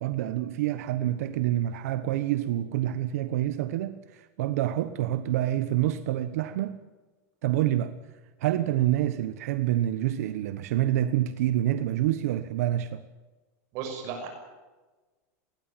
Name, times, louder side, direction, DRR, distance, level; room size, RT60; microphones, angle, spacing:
voice 1, 0.0-6.8 7.4-7.9 8.4-13.0, right 13 dB, 70° right, 11 dB, 1.2 m, -27 dB
voice 2, 13.7-14.3, right 6 dB, 40° right, 4 dB, 6.2 m, -34 dB
20.5 x 19.0 x 9.1 m, 1.2 s
supercardioid pair, 175°, 9 cm